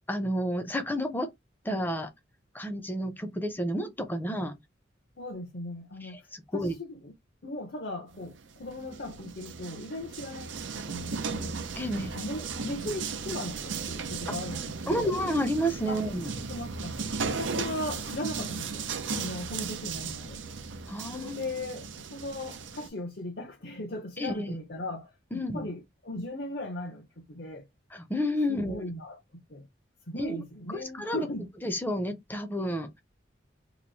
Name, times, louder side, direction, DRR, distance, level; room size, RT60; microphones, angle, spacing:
voice 1, 0.1-1.3 1.6-2.1 2.5-4.6 6.0-6.7 11.8-12.1 14.3-14.4 14.9-16.3 20.9-21.4 24.2-24.6 25.3-25.7 27.9-28.9 30.1-30.4 30.9-31.3 31.6-33.0, equal, 10° left, 0.6 m, -30 dB
voice 2, 5.2-6.2 6.5-7.1 7.4-11.6 11.9-15.1 15.9-16.0 16.5-18.8 19.1-20.4 21.1-27.6 28.5-29.7 30.1-31.5, left 1 dB, 55° left, 0.8 m, -38 dB
sound 1, 8.1-22.9, right 5 dB, 80° right, 0.6 m, -36 dB
3.0 x 2.6 x 4.0 m
head